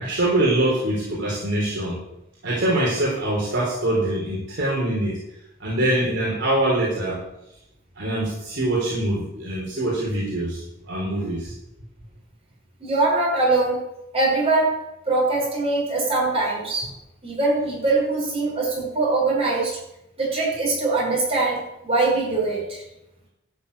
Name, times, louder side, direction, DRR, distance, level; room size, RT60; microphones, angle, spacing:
voice 1, 0.0-2.0 2.4-5.2 5.6-7.2 8.0-11.5, right 1 dB, 55° right, -5 dB, 3.8 m, -24 dB
voice 2, 12.8-13.8 14.1-14.8 15.1-16.9 17.2-19.8 20.2-22.8, right 3 dB, 30° right, -4 dB, 5.8 m, -22 dB
13.0 x 6.8 x 8.6 m, 0.89 s
head